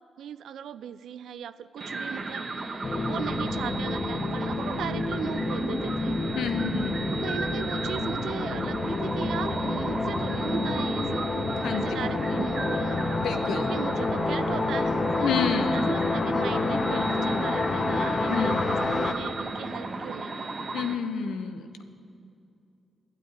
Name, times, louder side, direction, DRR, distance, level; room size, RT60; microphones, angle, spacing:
voice 1, 0.2-2.5 3.1-6.1 7.1-11.3 11.7-13.0 13.5-20.5, right 9 dB, 75° right, 13 dB, 0.4 m, -38 dB
sound 1, 1.8-20.9, right 3 dB, 45° right, 1.6 m, -34 dB
sound 2, 2.8-19.1, left 3 dB, 50° left, 1.3 m, -28 dB
voice 2, 6.3-7.0 11.6-12.0 13.2-13.7 15.2-15.8 18.3-18.6 20.7-21.8, left 6 dB, 75° left, 9 dB, 0.9 m, -29 dB
12.0 x 9.1 x 9.6 m, 2.5 s
supercardioid pair, 45°, 0 cm